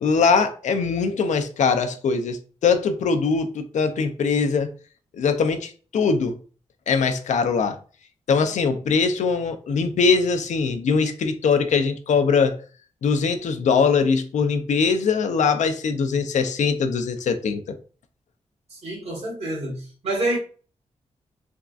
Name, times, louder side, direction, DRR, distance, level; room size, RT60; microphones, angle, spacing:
voice 1, 0.0-4.7 5.2-6.4 6.9-7.8 8.3-12.6 13.0-17.8, left 5 dB, 80° left, 0.4 m, -22 dB
voice 2, 18.7-20.4, right 1 dB, 60° right, 1.3 m, -27 dB
3.5 x 2.3 x 2.4 m
wide cardioid pair, 145°, 12 cm